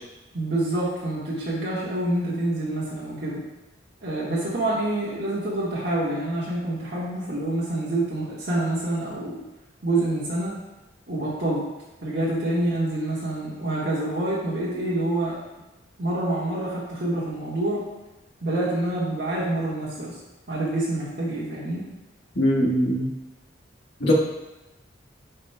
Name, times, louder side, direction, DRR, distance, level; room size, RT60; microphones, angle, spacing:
voice 1, 0.3-3.4 4.0-9.4 9.8-10.6 11.1-11.6 12.0-15.4 16.0-17.8 18.4-20.1 20.5-21.9, right 1 dB, 60° right, -8 dB, 1.5 m, -27 dB
voice 2, 22.3-23.1 24.0-24.1, equal, 65° left, -3 dB, 1.5 m, -21 dB
9.2 x 5.0 x 2.3 m, 1.1 s
head